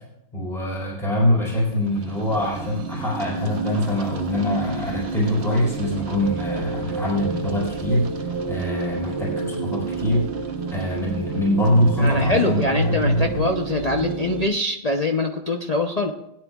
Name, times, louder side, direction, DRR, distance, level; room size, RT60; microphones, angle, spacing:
voice 1, 0.3-10.3 10.7-13.5, left 1 dB, ahead, -5 dB, 3.9 m, -23 dB
sound 1, 1.7-14.5, right 4 dB, 45° right, 1.0 m, -30 dB
voice 2, 12.0-16.1, left 2 dB, 65° left, 1 dB, 0.3 m, -24 dB
20.5 x 9.6 x 2.4 m, 0.87 s
omnidirectional pair, 1.8 m